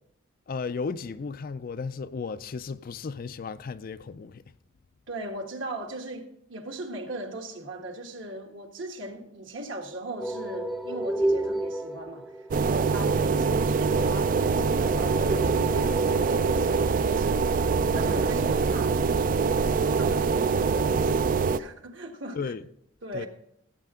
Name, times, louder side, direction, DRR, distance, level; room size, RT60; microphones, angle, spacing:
voice 1, 0.5-4.4 13.1-13.3 22.3-22.6 23.1-23.3, left 5 dB, 45° left, 0.4 m, -34 dB
voice 2, 5.1-17.6 17.9-19.5 19.9-22.4 23.0-23.3, right 1 dB, 65° right, 1.6 m, -38 dB
sound 1, 10.2-16.3, right 1 dB, ahead, 0.6 m, -33 dB
sound 2, 12.5-21.6, right 5 dB, 45° right, 0.4 m, -24 dB
16.0 x 8.4 x 3.7 m
head